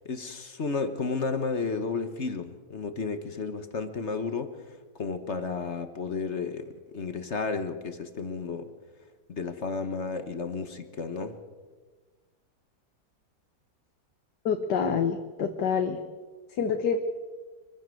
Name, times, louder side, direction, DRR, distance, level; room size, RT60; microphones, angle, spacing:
voice 1, 0.0-8.7 9.3-11.4, left 4 dB, 45° left, 9 dB, 1.4 m, -32 dB
voice 2, 14.5-16.0 16.6-17.1, left 6 dB, 80° left, 5 dB, 1.8 m, -27 dB
24.5 x 15.0 x 7.8 m, 1.4 s
omnidirectional pair, 1.8 m